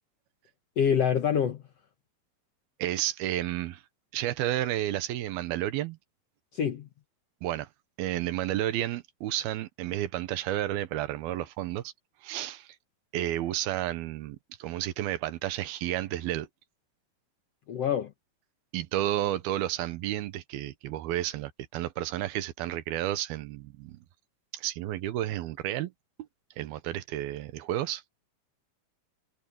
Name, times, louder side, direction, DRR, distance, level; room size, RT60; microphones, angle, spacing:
voice 1, 0.8-1.6 6.5-6.9 17.7-18.1, left 8 dB, 65° left, 1.6 m, -26 dB
voice 2, 2.8-3.8 4.1-6.0 7.4-7.7 8.0-11.9 12.2-12.8 13.1-16.5 18.7-24.0 24.5-25.9 26.6-28.0, right 13 dB, 80° right, 2.8 m, -31 dB
omnidirectional pair, 4.4 m